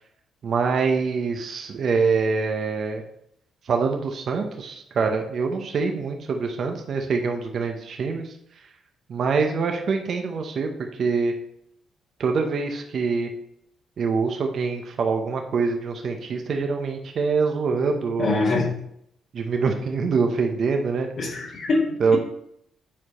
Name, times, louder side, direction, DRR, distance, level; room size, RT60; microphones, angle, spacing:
voice 1, 0.4-3.0 3.6-8.6 9.1-11.3 12.2-13.3 14.0-18.4 19.3-21.1 22.0-22.2, right 4 dB, 55° right, 3 dB, 0.9 m, -25 dB
voice 2, 18.2-18.7 21.2-21.8 22.1-22.2, left 3 dB, 55° left, -1 dB, 1.8 m, -23 dB
7.5 x 4.6 x 4.3 m, 0.73 s
cardioid pair, 90°, 0 cm